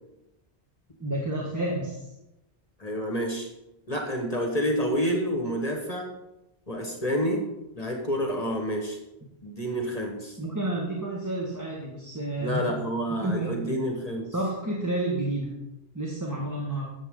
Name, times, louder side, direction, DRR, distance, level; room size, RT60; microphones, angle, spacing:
voice 1, 1.0-2.1 10.4-12.7 13.1-13.8 14.3-15.5 15.9-16.8, right 2 dB, 15° right, -4 dB, 1.6 m, -30 dB
voice 2, 2.8-3.5 3.9-6.1 6.7-7.5 7.7-9.0 9.4-10.4 12.4-14.3, equal, 35° left, 1 dB, 1.4 m, -28 dB
13.5 x 7.6 x 3.8 m, 0.95 s
omnidirectional pair, 1.1 m